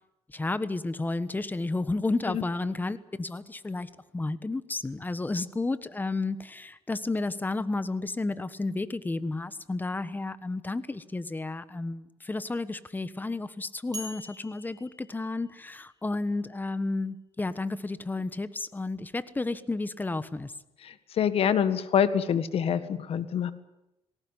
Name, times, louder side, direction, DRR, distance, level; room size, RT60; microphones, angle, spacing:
voice 1, 0.3-20.5, left 2 dB, 15° left, 14 dB, 1.3 m, -32 dB
sound 1, 13.9-16.0, right 1 dB, 35° right, 6.0 m, -44 dB
voice 2, 20.8-23.5, left 8 dB, 55° left, 13 dB, 1.7 m, -26 dB
19.5 x 18.0 x 9.8 m, 0.93 s
cardioid pair, 95°, 12 cm